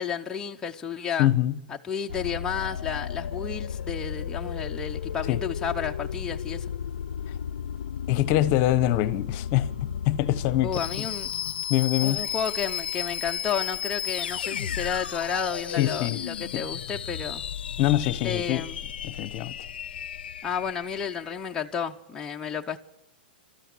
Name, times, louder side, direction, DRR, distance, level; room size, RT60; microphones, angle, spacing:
voice 1, 0.0-1.3 1.7-6.7 10.6-11.3 12.0-17.4 18.2-18.8 20.4-22.8, left 7 dB, 10° left, 0.9 m, -32 dB
voice 2, 1.2-1.5 5.3-5.4 8.1-9.7 10.1-10.7 11.7-12.2 15.8-16.2 16.5-16.6 17.8-18.6 19.0-19.6, left 14 dB, 40° left, 1.1 m, -24 dB
sound 1, 2.1-21.4, left 9 dB, 85° left, 0.7 m, -34 dB
24.0 x 13.0 x 8.5 m
hypercardioid pair, 145°, 5 cm